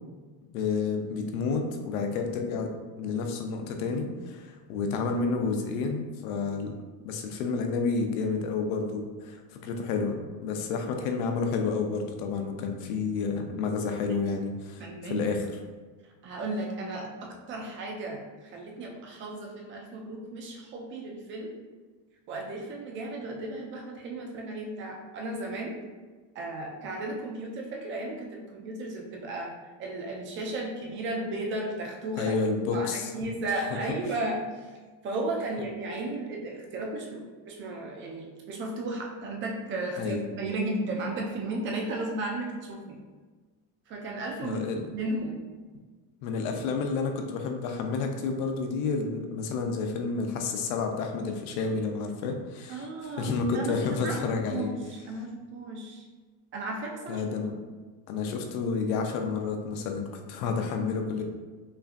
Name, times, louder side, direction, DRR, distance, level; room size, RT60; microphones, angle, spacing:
voice 1, 0.5-2.7 3.0-6.8 7.0-15.4 32.2-33.1 33.7-33.8 40.0-40.2 44.4-44.9 46.2-54.7 57.1-57.6 58.1-61.2, left 4 dB, 85° left, 4 dB, 0.7 m, -30 dB
voice 2, 14.8-15.3 16.2-21.5 22.3-25.8 26.4-29.5 29.8-32.3 32.7-34.4 35.0-43.0 43.9-44.6 44.9-45.4 52.7-54.2 54.5-56.0 56.5-57.5, right 2 dB, 30° right, 0 dB, 0.4 m, -34 dB
5.5 x 2.6 x 2.4 m, 1.4 s
cardioid pair, 165°, 41 cm